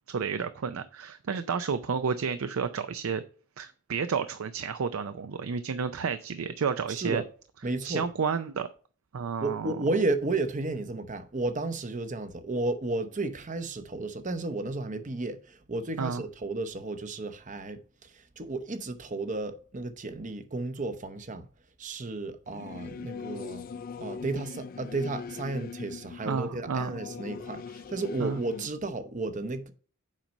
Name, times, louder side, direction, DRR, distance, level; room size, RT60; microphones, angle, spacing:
voice 1, 0.1-3.2 3.6-7.2 7.8-8.7 9.1-9.7 16.0-16.2 26.2-26.9 28.2-28.4, right 6 dB, 80° right, 0.5 m, -31 dB
voice 2, 6.9-7.3 7.6-8.1 9.4-21.5 21.8-23.6 24.0-29.7, right 2 dB, 35° right, 0.7 m, -33 dB
Singing / Musical instrument, 22.5-28.7, left 5 dB, 40° left, 0.3 m, -41 dB
7.4 x 5.3 x 5.2 m
head